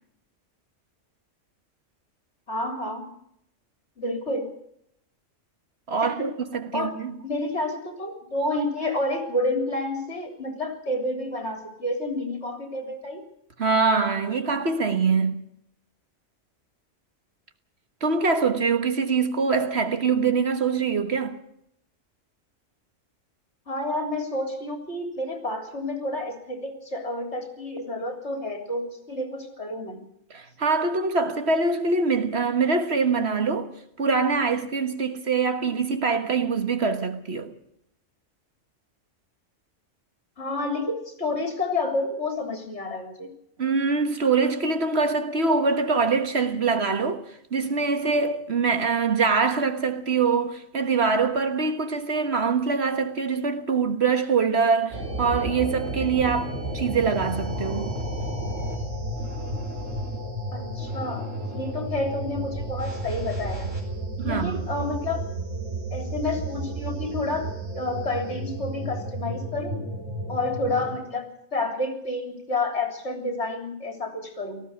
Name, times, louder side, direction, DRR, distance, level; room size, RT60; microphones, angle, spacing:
voice 1, 2.5-3.1 4.0-4.5 6.0-6.3 6.7-7.0 7.2-13.2 23.7-30.0 40.4-43.3 60.5-63.7 64.2-65.3 65.9-69.8 70.3-74.6, left 2 dB, 65° left, 3.9 m, -29 dB
voice 2, 5.9-7.1 13.6-15.4 18.0-21.4 30.3-37.5 43.6-47.3 47.5-58.0 64.2-64.6, right 4 dB, 55° right, 1.7 m, -24 dB
sound 1, 54.9-71.0, right 1 dB, 80° right, 5.1 m, -32 dB
19.0 x 15.0 x 9.7 m
omnidirectional pair, 1.3 m